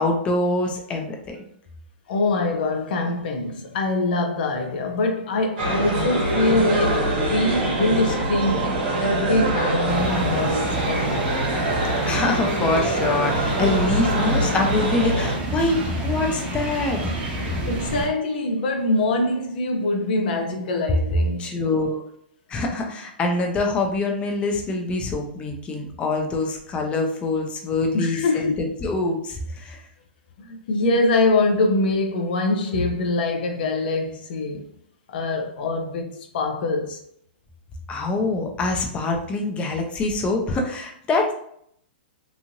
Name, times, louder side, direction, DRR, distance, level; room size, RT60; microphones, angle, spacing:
voice 1, 0.0-1.4 12.0-17.1 21.4-22.0 22.5-29.8 37.9-41.3, left 2 dB, 20° left, 0.6 m, -24 dB
voice 2, 2.1-11.4 17.7-21.5 27.9-28.5 30.4-34.7 35.1-37.0, left 2 dB, 60° left, 0.5 m, -24 dB
sound 1, 5.6-15.4, right 1 dB, 65° right, 1.2 m, -24 dB
sound 2, 9.9-18.1, right 1 dB, 30° right, 0.9 m, -29 dB
3.0 x 2.6 x 2.5 m
hypercardioid pair, 125°, 6 cm